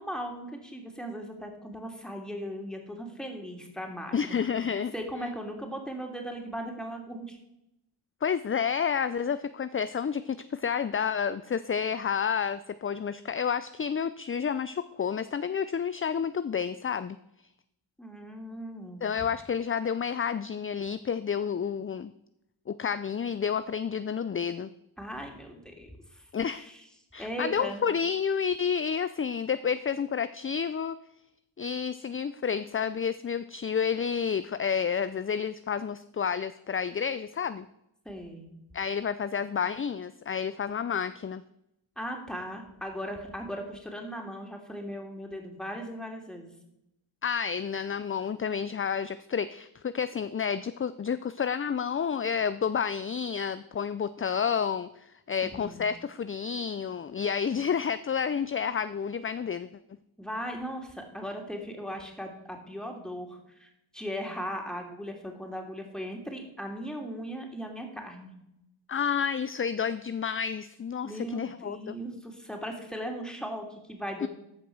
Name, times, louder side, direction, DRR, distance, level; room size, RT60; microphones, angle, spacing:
voice 1, 0.0-4.3 4.9-7.4 18.0-19.0 25.0-26.2 26.5-26.8 27.2-27.8 38.0-38.5 42.0-46.5 55.4-55.8 60.2-68.3 71.0-74.3, equal, ahead, 2 dB, 3.0 m, -38 dB
voice 2, 4.1-4.9 8.2-17.2 19.0-22.1 22.7-24.7 26.3-26.7 27.1-31.0 31.6-37.7 38.7-41.4 47.2-59.7 68.9-72.0 74.2-74.3, left 7 dB, 30° left, 13 dB, 0.4 m, -30 dB
14.0 x 5.2 x 6.0 m, 0.82 s
cardioid pair, 40°, 48 cm